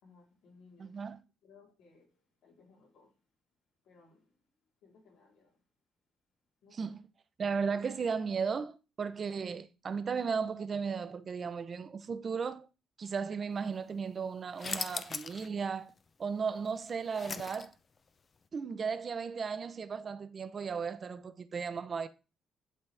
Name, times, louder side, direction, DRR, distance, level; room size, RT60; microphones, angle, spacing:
voice 1, 0.0-1.0 1.4-3.1 3.8-4.4 4.8-5.6 6.6-6.9, left 4 dB, 80° left, 3.8 m, -61 dB
voice 2, 0.8-1.2 6.7-7.0 7.4-12.7 13.0-15.9 16.2-17.7 18.5-22.1, right 5 dB, 45° right, 0.8 m, -35 dB
sound 1, 14.6-15.5 15.9-16.0 16.7-18.0, left 5 dB, 40° left, 0.7 m, -39 dB
11.5 x 4.1 x 3.5 m
cardioid pair, 90°, 0 cm